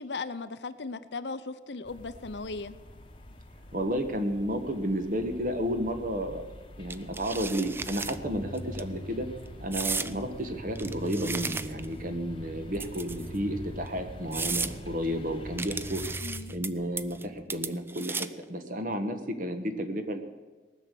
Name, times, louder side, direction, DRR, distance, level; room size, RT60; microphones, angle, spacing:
voice 1, 0.0-2.8 16.2-16.5, left 3 dB, 80° left, 12 dB, 0.8 m, -37 dB
sound 1, 1.8-16.2, left 1 dB, 30° left, 1.1 m, -47 dB
voice 2, 3.7-6.5 6.8-9.3 9.6-16.0 16.5-20.3, equal, 50° right, 7 dB, 1.3 m, -32 dB
sound 2, 6.9-8.2 8.6-8.8 9.7-10.1 10.8-11.9 12.8-13.4 13.9-14.0 14.3-14.7 15.6-16.7 17.0-17.3 17.5-18.4, right 4 dB, 15° right, 0.4 m, -34 dB
sound 3, 7.6-17.6, equal, 75° right, 2.8 m, -44 dB
19.0 x 6.5 x 8.4 m, 1.4 s
head